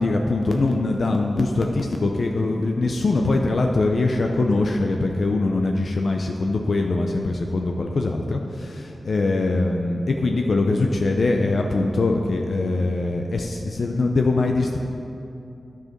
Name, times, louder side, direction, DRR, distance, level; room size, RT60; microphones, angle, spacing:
voice 1, 0.0-14.8, left 2 dB, 65° left, 2 dB, 0.5 m, -22 dB
9.5 x 4.7 x 5.9 m, 2.7 s
wide cardioid pair, 80°, 0 cm